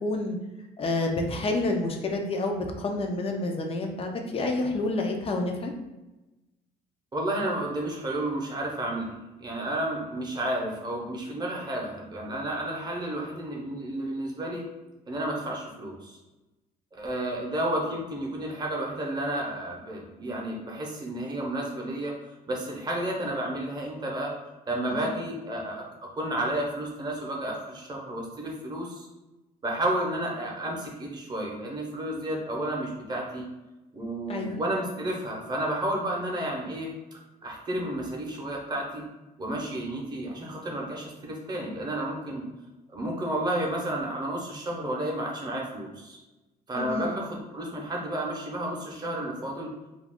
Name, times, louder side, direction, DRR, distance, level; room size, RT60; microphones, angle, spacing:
voice 1, 0.0-0.4 0.8-5.7 24.9-25.1 34.3-34.6 46.8-47.2, left 2 dB, 35° left, 3 dB, 0.5 m, -29 dB
voice 2, 7.1-9.1 9.4-14.7 15.1-16.2 16.9-22.1 22.5-24.3 24.7-25.8 26.2-29.1 29.6-33.5 33.9-39.0 39.4-42.5 42.9-46.2 46.7-49.7, right 1 dB, 25° right, -2 dB, 0.8 m, -31 dB
2.4 x 2.3 x 3.5 m, 1.1 s
cardioid pair, 110°, 17 cm